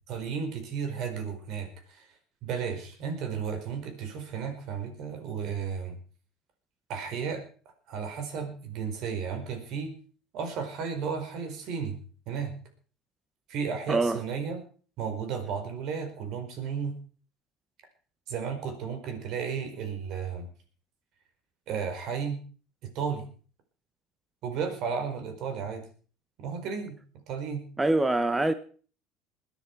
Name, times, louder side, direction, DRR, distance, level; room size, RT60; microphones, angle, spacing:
voice 1, 0.1-2.1 2.4-6.0 6.9-7.4 7.9-9.9 10.3-12.0 12.3-12.5 13.5-14.6 15.0-16.9 18.3-20.5 21.7-22.4 22.8-23.2 24.4-25.8 26.4-27.0 27.3-27.6, right 6 dB, 60° right, 4.5 m, -33 dB
voice 2, 13.9-14.2 27.8-28.5, right 2 dB, 15° right, 0.9 m, -24 dB
20.5 x 10.5 x 4.6 m
supercardioid pair, 100°, 0 cm